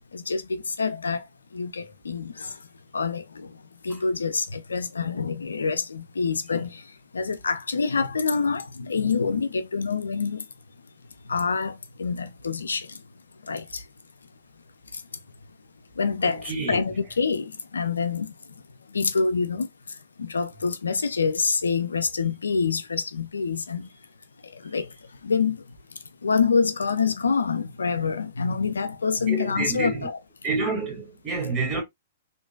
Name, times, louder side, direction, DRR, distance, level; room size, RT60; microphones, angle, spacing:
voice 1, 0.1-1.2 1.5-2.6 2.9-3.5 3.8-6.8 7.1-10.4 11.3-13.0 13.5-13.8 16.0-18.3 18.9-19.7 20.2-23.9 24.5-24.9 25.2-25.6 26.2-30.2, left 5 dB, 85° left, 0.4 m, -26 dB
voice 2, 16.2-16.8 29.3-30.1 30.4-31.8, right 3 dB, 25° right, 1.8 m, -28 dB
3.8 x 2.5 x 2.2 m
hypercardioid pair, 115°, 0 cm